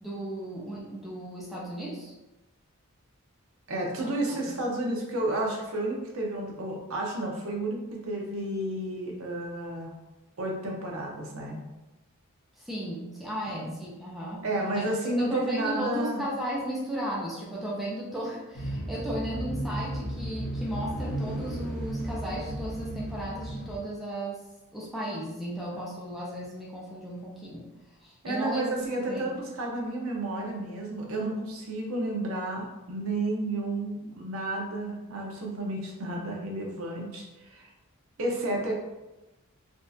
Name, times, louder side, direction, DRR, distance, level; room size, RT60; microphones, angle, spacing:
voice 1, 0.0-2.1 4.0-4.5 12.6-14.4 14.8-14.9 15.2-24.4 24.7-27.7 28.0-29.3, equal, ahead, -6 dB, 0.5 m, -35 dB
voice 2, 3.7-9.9 10.4-11.6 13.5-13.7 14.4-16.2 28.2-37.7 38.2-38.8, right 1 dB, 70° right, -1 dB, 0.7 m, -31 dB
sound 1, 18.5-23.8, right 1 dB, 55° left, 0.8 m, -34 dB
3.5 x 2.4 x 2.7 m, 1.0 s
head